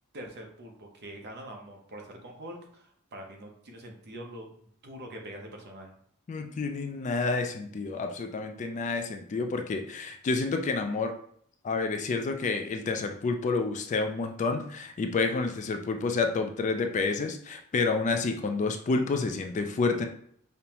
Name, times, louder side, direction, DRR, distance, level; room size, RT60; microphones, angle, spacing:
voice 1, 0.1-5.9, right 1 dB, 50° right, 2 dB, 0.7 m, -44 dB
voice 2, 6.3-11.1 11.6-20.1, left 4 dB, 35° left, 5 dB, 0.3 m, -29 dB
5.3 x 2.0 x 2.9 m, 0.64 s
head